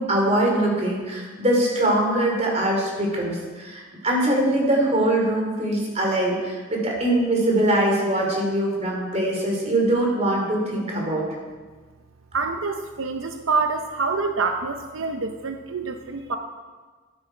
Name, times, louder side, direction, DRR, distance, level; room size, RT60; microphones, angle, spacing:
voice 1, 0.0-11.2, right 1 dB, 35° right, -1 dB, 2.9 m, -22 dB
voice 2, 12.3-16.4, right 4 dB, 85° right, 5 dB, 0.7 m, -26 dB
13.0 x 9.8 x 4.5 m, 1.4 s
head